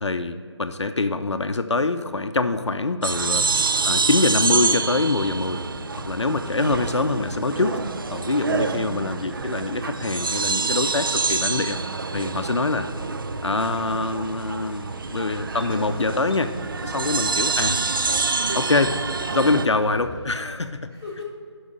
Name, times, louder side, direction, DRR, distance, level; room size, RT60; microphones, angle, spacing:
voice 1, 0.0-5.6 6.0-7.8 8.1-11.8 12.1-12.9 13.4-16.5 16.8-17.8 18.5-18.9 19.3-20.9, left 3 dB, 80° left, 9 dB, 0.6 m, -24 dB
sound 1, 3.0-19.7, right 4 dB, 50° right, 0.4 m, -26 dB
voice 2, 8.3-9.2 17.8-18.6 18.9-19.1 20.9-21.2, left 2 dB, 15° right, -8 dB, 2.0 m, -43 dB
Boat Water vehicle, 13.3-20.4, left 1 dB, 20° left, 1.3 m, -44 dB
7.0 x 5.5 x 6.6 m, 2.1 s
figure-of-eight pair, 155°, 15 cm